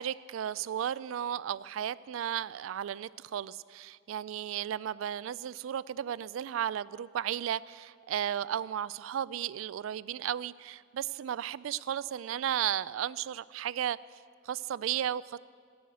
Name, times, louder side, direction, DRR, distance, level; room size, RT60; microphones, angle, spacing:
voice 1, 0.0-14.0 14.5-15.4, right 10 dB, 85° right, 19 dB, 0.3 m, -34 dB
19.0 x 6.4 x 9.0 m, 2.1 s
head